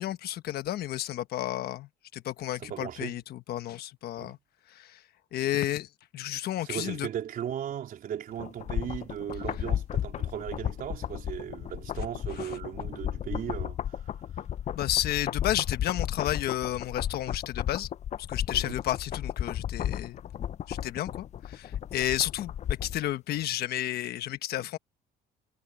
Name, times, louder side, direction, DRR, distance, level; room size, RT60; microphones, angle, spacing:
voice 1, 0.0-4.4 4.7-5.0 5.3-7.1 12.4-12.6 14.7-17.9 18.3-20.2 20.7-24.8, left 13 dB, 70° left, 1.2 m, -32 dB
voice 2, 2.6-3.2 4.2-4.4 6.6-14.1 18.7-18.8, right 10 dB, 55° right, 3.7 m, -37 dB
sound 1, 8.4-23.1 23.4-23.5, left 10 dB, 45° left, 0.5 m, -34 dB
cardioid pair, 110°, 17 cm